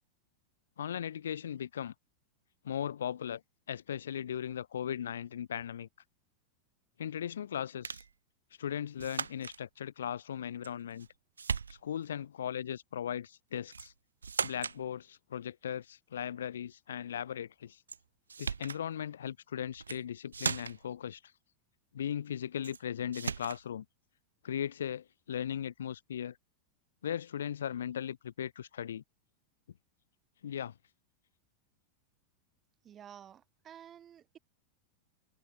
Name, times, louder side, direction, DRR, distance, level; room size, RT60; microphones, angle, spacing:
voice 1, 0.8-1.9 2.6-3.4 3.7-5.9 7.0-8.0 8.6-11.1 11.7-13.9 14.4-17.8 18.4-21.2 21.9-23.9 24.4-26.4 27.0-29.0 30.4-30.7, left 9 dB, 65° left, 3.7 m, -38 dB
sound 1, 7.8-8.1 9.0-9.6 10.6-11.1 11.4-12.1 13.7-13.9 14.2-14.8 17.9-18.0 18.3-18.8 19.7-20.0 20.3-20.9 22.6-22.8 23.1-23.6, right 6 dB, 75° right, 2.1 m, -37 dB
voice 2, 32.8-34.4, right 9 dB, 25° right, 3.7 m, -52 dB
figure-of-eight pair, 90°, 0 cm